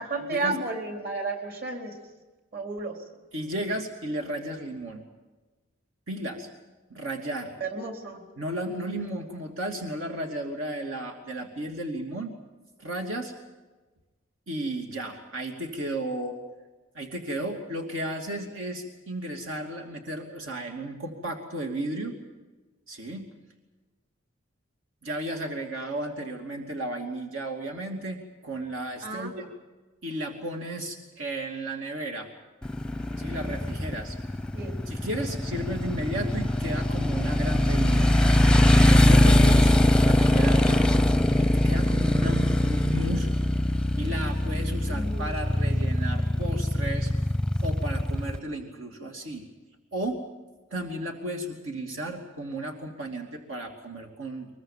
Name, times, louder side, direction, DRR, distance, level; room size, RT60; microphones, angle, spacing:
voice 1, 0.0-2.0 2.5-3.0 7.6-8.3 29.0-29.3 34.5-34.8 44.9-45.3, right 3 dB, 50° right, 4 dB, 4.0 m, -32 dB
voice 2, 3.3-5.0 6.1-6.5 6.9-7.5 8.4-12.3 12.8-13.3 14.5-16.4 16.9-22.1 22.9-23.3 25.0-29.5 30.0-32.3 33.2-34.2 34.9-38.1 38.7-40.8 41.4-43.3 44.0-47.1 47.6-49.5 49.9-50.2 50.7-54.5, right 1 dB, 80° right, 2 dB, 2.8 m, -34 dB
Motorcycle, 32.6-48.4, left 1 dB, 5° left, 0.7 m, -22 dB
23.5 x 22.0 x 7.4 m, 1.2 s
head